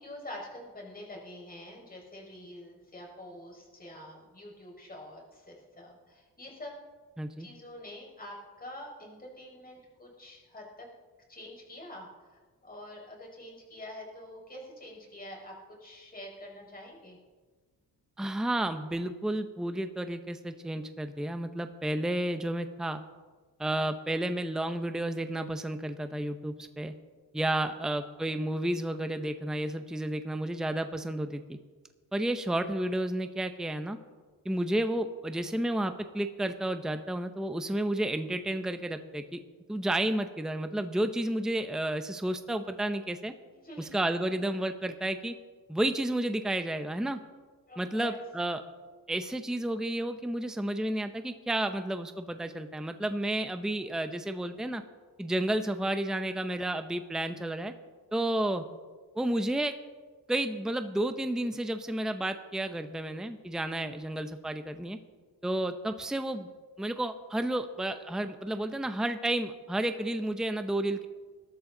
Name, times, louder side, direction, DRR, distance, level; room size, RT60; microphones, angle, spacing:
voice 1, 0.0-6.7 7.4-10.9 11.3-17.2 43.6-43.9 47.7-48.2, left 1 dB, 25° left, -1 dB, 5.3 m, -46 dB
voice 2, 7.2-7.5 18.2-23.0 23.6-26.9 27.3-31.6 32.1-34.0 34.4-39.4 39.7-43.3 43.8-45.3 45.7-47.2 47.8-48.6 49.1-54.8 55.2-57.7 58.1-58.6 59.1-59.7 60.3-65.0 65.4-66.5 66.8-71.1, right 1 dB, ahead, 8 dB, 0.8 m, -31 dB
20.5 x 13.0 x 3.9 m, 1.4 s
cardioid pair, 110°, 37 cm